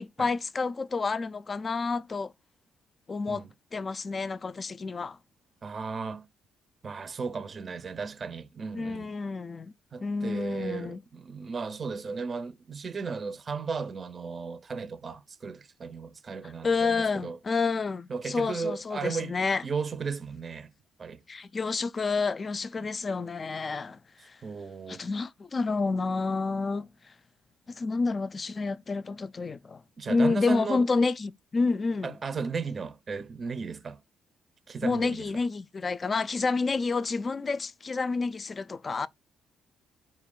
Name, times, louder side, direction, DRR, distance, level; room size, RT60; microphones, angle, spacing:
voice 1, 0.0-2.3 3.1-3.4 3.7-5.2 8.7-9.7 10.0-11.0 16.6-19.6 21.3-24.4 24.9-26.9 27.7-32.2 34.8-39.1, left 4 dB, 35° left, 0.3 m, -29 dB
voice 2, 5.6-6.3 6.8-9.1 9.9-17.4 18.1-19.3 19.6-20.7 21.0-21.2 22.8-22.9 24.4-25.1 30.0-30.8 32.0-34.0 34.7-35.3, right 5 dB, 40° right, 0.5 m, -35 dB
4.2 x 2.5 x 3.7 m
cardioid pair, 90°, 0 cm